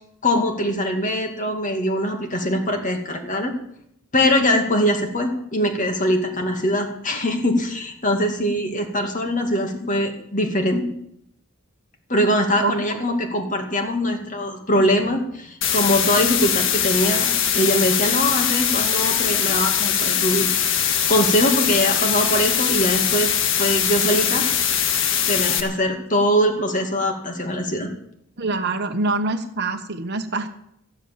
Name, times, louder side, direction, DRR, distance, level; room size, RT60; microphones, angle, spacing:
voice 1, 0.2-3.5 4.1-10.9 12.1-23.3 23.6-24.5 25.3-27.9, equal, 35° left, 4 dB, 2.3 m, -22 dB
sound 1, 15.6-25.6, left 8 dB, 60° left, 1.6 m, -21 dB
voice 2, 28.4-30.5, right 3 dB, 50° right, 5 dB, 1.1 m, -25 dB
13.5 x 11.0 x 7.4 m, 0.72 s
head